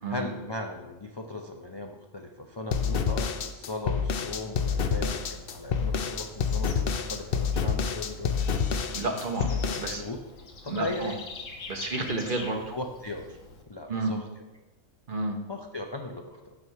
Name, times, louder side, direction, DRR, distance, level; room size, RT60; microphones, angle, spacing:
voice 1, 0.1-8.3 9.5-10.2 10.6-11.2 12.7-13.4 13.7-14.4 15.5-16.6, left 2 dB, 40° left, 3 dB, 0.4 m, -38 dB
sound 1, 2.7-10.0, left 6 dB, 55° left, 0.7 m, -28 dB
Bird / Insect, 5.1-13.6, left 3 dB, 85° left, 1.5 m, -45 dB
voice 2, 8.9-9.5 9.8-10.0 10.7-11.1 11.7-12.6 13.9-14.1 15.1-15.4, right 2 dB, 45° right, 4 dB, 1.1 m, -30 dB
7.1 x 6.2 x 5.6 m, 1.1 s
omnidirectional pair, 1.3 m